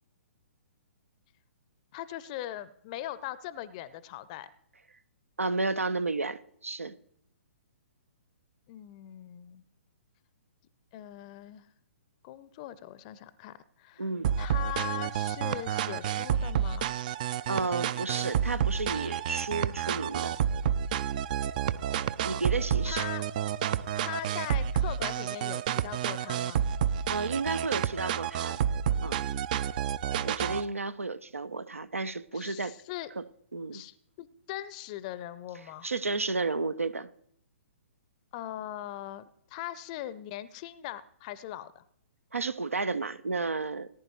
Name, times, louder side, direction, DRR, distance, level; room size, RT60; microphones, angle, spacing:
voice 1, 1.9-4.5 8.7-9.6 10.9-11.7 12.2-14.1 14.4-16.9 22.9-23.2 24.0-26.6 32.3-33.1 33.7-35.9 38.3-41.8, left 13 dB, 30° left, 0.6 m, -40 dB
voice 2, 5.4-6.9 14.0-14.3 17.5-20.3 22.2-23.1 27.1-28.6 29.0-29.2 30.2-32.7 33.2-33.3 33.5-33.8 35.8-37.1 42.3-43.9, right 3 dB, 75° right, 0.7 m, -32 dB
sound 1, 14.2-30.6, right 9 dB, 35° right, 0.4 m, -30 dB
18.0 x 10.5 x 3.1 m
figure-of-eight pair, 120°, 7 cm